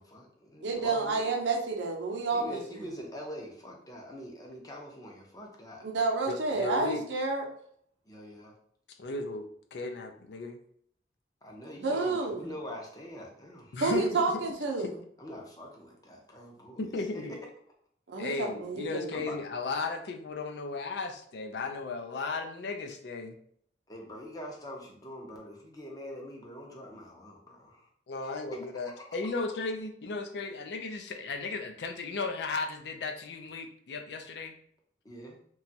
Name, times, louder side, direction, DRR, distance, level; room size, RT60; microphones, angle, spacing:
voice 1, 0.0-1.2 2.3-5.9 8.1-8.6 11.4-13.8 15.2-17.3 19.1-19.4 23.9-27.9 28.2-28.3 28.8-29.0 35.0-35.4, equal, 20° left, -1 dB, 0.6 m, -44 dB
voice 2, 0.6-2.6 5.8-7.5 11.8-12.5 13.8-14.9 18.1-19.3, right 3 dB, 80° right, 1 dB, 0.6 m, -30 dB
voice 3, 6.3-7.0 9.0-10.6 13.7-14.4 16.8-17.3 18.2-23.4 28.1-34.5, left 3 dB, 65° left, 5 dB, 0.4 m, -35 dB
2.9 x 2.3 x 2.7 m, 0.64 s
head